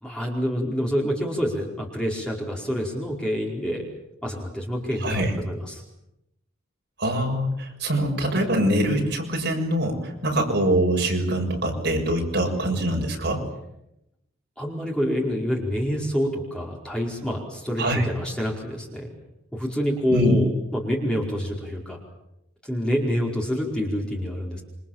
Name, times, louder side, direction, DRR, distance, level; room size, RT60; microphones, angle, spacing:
voice 1, 0.0-3.8 4.2-5.8 14.6-19.1 19.5-22.0 22.6-24.6, equal, 5° left, -2 dB, 4.8 m, -27 dB
voice 2, 5.0-5.3 7.0-13.4 17.8-18.1 20.1-20.3, right 1 dB, 55° right, 0 dB, 7.0 m, -24 dB
27.5 x 26.0 x 7.3 m, 0.86 s
head